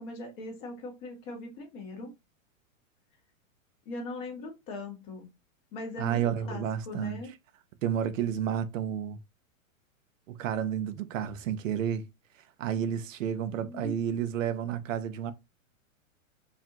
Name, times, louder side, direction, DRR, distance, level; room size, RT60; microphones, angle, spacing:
voice 1, 0.0-2.1 3.8-5.3 5.7-7.3 13.6-14.0, left 2 dB, 35° left, 1.4 m, -40 dB
voice 2, 6.0-7.2 7.8-9.2 10.3-12.1 12.6-15.3, right 9 dB, 65° right, 0.6 m, -31 dB
4.9 x 2.5 x 2.7 m
hypercardioid pair, 150°, 41 cm